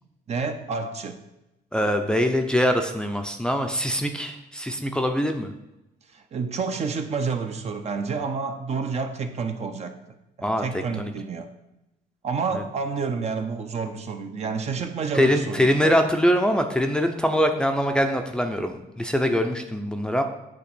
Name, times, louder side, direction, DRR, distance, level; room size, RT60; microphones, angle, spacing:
voice 1, 0.3-1.2 6.1-9.9 10.4-11.5 12.2-16.0, right 5 dB, 40° right, 6 dB, 0.8 m, -29 dB
voice 2, 1.7-5.5 10.4-11.1 12.5-12.6 15.1-20.2, equal, 5° left, 4 dB, 0.6 m, -23 dB
8.5 x 3.1 x 6.1 m, 0.94 s
cardioid pair, 110°, 17 cm